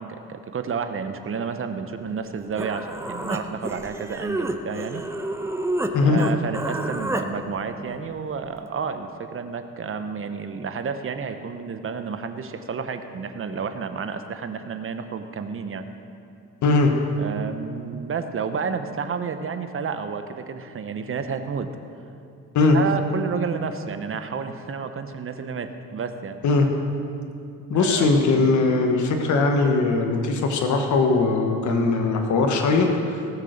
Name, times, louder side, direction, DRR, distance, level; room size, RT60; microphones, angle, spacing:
voice 1, 0.0-5.0 5.9-15.8 17.2-21.7 22.7-26.4 27.7-28.1 28.3-28.5 31.5-31.6, right 5 dB, 45° right, 8 dB, 0.9 m, -31 dB
Human voice, 2.2-2.3 2.6-5.9 6.2-7.3, right 1 dB, 10° right, 0.9 m, -29 dB
voice 2, 16.6-16.9 22.5-22.8 26.4-26.7 27.7-33.2, left 3 dB, 75° left, 3 dB, 1.3 m, -20 dB
18.5 x 6.6 x 6.5 m, 2.5 s
cardioid pair, 90°, 30 cm